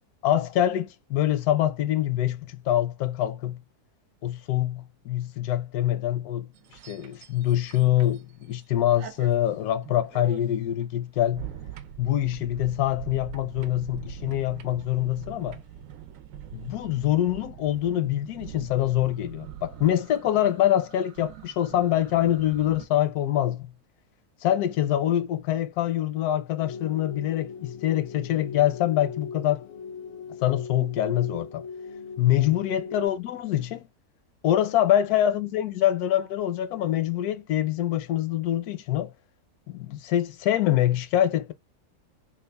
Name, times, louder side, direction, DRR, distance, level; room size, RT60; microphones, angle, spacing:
voice 1, 0.2-3.6 4.2-6.5 6.9-11.5 12.0-15.6 16.5-23.7 24.4-29.6 30.4-31.6 32.2-33.8 34.4-39.1 39.7-41.5, left 12 dB, 80° left, 1.1 m, -25 dB
sound 1, 6.5-8.6 8.9-22.9, right 10 dB, 70° right, 0.9 m, -43 dB
sound 2, 26.6-33.1, left 5 dB, 65° left, 0.8 m, -39 dB
3.4 x 2.3 x 3.3 m
omnidirectional pair, 1.6 m